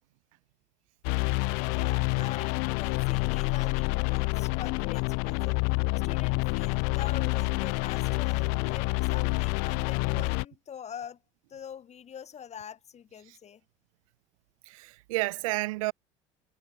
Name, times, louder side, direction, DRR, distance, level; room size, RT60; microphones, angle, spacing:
sound 1, 1.0-10.4, left 40 dB or more, 70° left, 0.4 m, -28 dB
voice 1, 1.7-11.2 11.5-13.6, left 8 dB, 40° left, 5.6 m, -44 dB
voice 2, 14.7-15.9, right 21 dB, 80° right, 1.0 m, -31 dB
hypercardioid pair, 75°, 17 cm